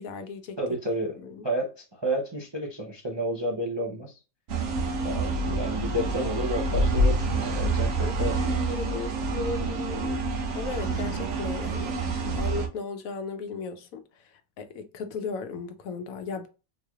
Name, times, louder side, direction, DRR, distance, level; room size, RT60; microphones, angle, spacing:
voice 1, 0.0-0.6 1.2-1.5 7.9-16.5, left 4 dB, 75° left, 1.0 m, -36 dB
voice 2, 0.6-1.2 1.4-4.2 5.0-8.4, right 1 dB, 35° right, 0.4 m, -31 dB
sound 1, 4.5-12.7, right 2 dB, 70° right, 1.1 m, -27 dB
4.0 x 3.1 x 2.3 m
omnidirectional pair, 1.5 m